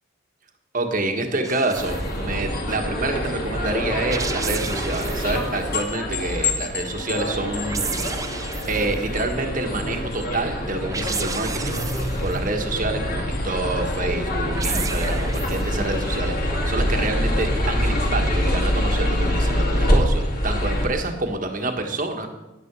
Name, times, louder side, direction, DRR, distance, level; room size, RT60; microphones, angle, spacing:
voice 1, 0.7-7.9 8.3-22.3, right 2 dB, 40° right, 5 dB, 1.4 m, -27 dB
sound 1, 1.4-2.1 3.9-5.5 7.3-9.0 10.8-12.4 14.2-15.8, right 5 dB, 15° right, 0.5 m, -32 dB
sound 2, 1.7-20.9, left 1 dB, 50° left, 2.5 m, -25 dB
10.5 x 9.7 x 6.1 m, 1.0 s
head